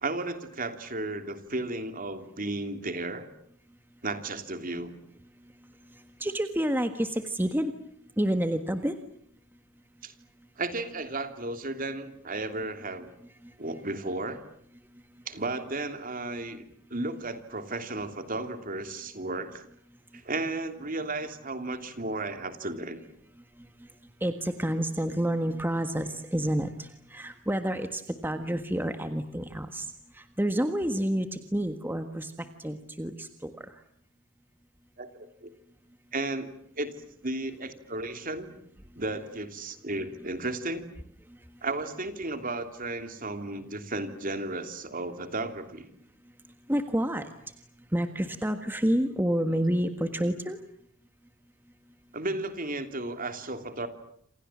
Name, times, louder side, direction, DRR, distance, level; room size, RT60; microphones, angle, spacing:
voice 1, 0.0-3.3 4.0-4.9 10.0-10.1 10.6-13.1 13.6-14.4 15.3-16.6 16.9-19.7 20.1-23.0 35.0-35.5 36.1-36.5 36.8-36.9 37.2-38.5 39.0-40.9 41.6-45.9 52.1-53.9, right 2 dB, 40° right, 8 dB, 3.1 m, -34 dB
voice 2, 6.2-7.7 8.2-8.9 24.2-32.3 32.6-33.5 46.7-47.3 47.9-50.6, right 1 dB, 10° right, 8 dB, 1.6 m, -29 dB
28.0 x 28.0 x 7.5 m, 0.66 s
head